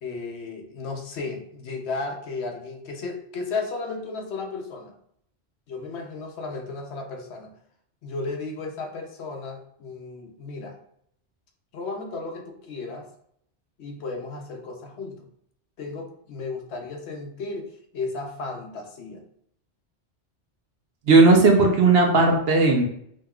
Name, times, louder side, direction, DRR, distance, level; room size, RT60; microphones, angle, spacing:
voice 1, 0.0-4.9 5.7-7.5 8.0-10.8 11.7-13.1 13.8-15.3 15.8-17.7 17.9-19.2, left 3 dB, 70° left, 3 dB, 0.9 m, -34 dB
voice 2, 21.1-22.8, right 3 dB, 60° right, 1 dB, 0.9 m, -16 dB
5.0 x 2.9 x 2.3 m, 0.70 s
omnidirectional pair, 1.2 m